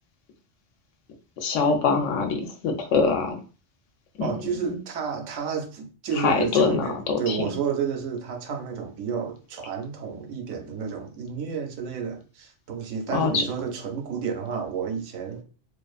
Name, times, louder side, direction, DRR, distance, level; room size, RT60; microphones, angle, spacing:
voice 1, 1.4-3.4 4.2-4.3 4.7-4.8 6.2-7.5 13.1-13.4, left 4 dB, 80° left, 0.9 m, -23 dB
voice 2, 4.2-15.4, right 6 dB, 85° right, 1.0 m, -31 dB
2.5 x 2.4 x 2.3 m
omnidirectional pair, 1.3 m